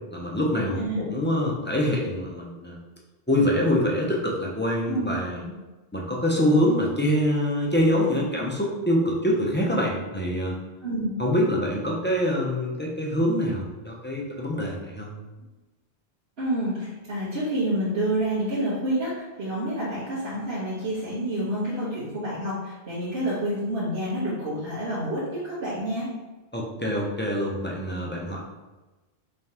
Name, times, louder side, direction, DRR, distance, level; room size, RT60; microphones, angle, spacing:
voice 1, 0.1-2.8 3.3-5.4 5.9-10.6 11.2-15.1 26.5-28.4, equal, 15° left, -3 dB, 0.5 m, -25 dB
voice 2, 10.8-11.1 16.4-26.1, right 1 dB, 80° right, -12 dB, 1.6 m, -28 dB
5.4 x 3.4 x 2.9 m, 1.2 s
omnidirectional pair, 1.0 m